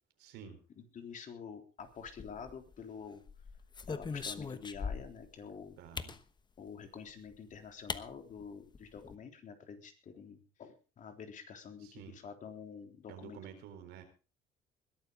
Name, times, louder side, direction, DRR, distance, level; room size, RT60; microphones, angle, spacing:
voice 1, 0.2-0.6 5.8-6.1 11.8-12.2 13.1-14.0, right 8 dB, 85° right, 6 dB, 4.2 m, -50 dB
voice 2, 0.8-3.2 3.9-5.8 6.6-13.4, left 6 dB, 50° left, 5 dB, 3.6 m, -48 dB
sound 1, 2.1-2.8 3.3-5.3 6.0-6.2 7.3-7.4 7.9-8.0 8.4-8.5 8.7-9.2, left 5 dB, 25° left, 1.2 m, -40 dB
21.0 x 12.0 x 3.9 m, 0.33 s
cardioid pair, 110°, 17 cm